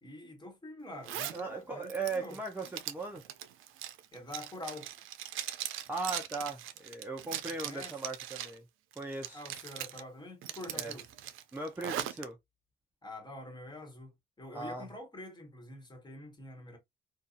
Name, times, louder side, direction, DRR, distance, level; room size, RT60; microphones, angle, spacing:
voice 1, 0.0-2.4 4.1-4.9 7.6-7.9 9.3-11.1 13.0-16.8, left 1 dB, 20° left, 1.4 m, -46 dB
Zipper (clothing), 1.0-1.4 1.8-8.6 8.9-10.0 10.4-12.2, right 11 dB, 85° right, 0.4 m, -40 dB
voice 2, 1.3-3.2 5.9-8.6 9.0-9.4 10.7-10.9 11.5-12.4 14.5-14.8, right 3 dB, 10° right, 0.6 m, -38 dB
2.7 x 2.3 x 2.4 m
cardioid pair, 90°, 20 cm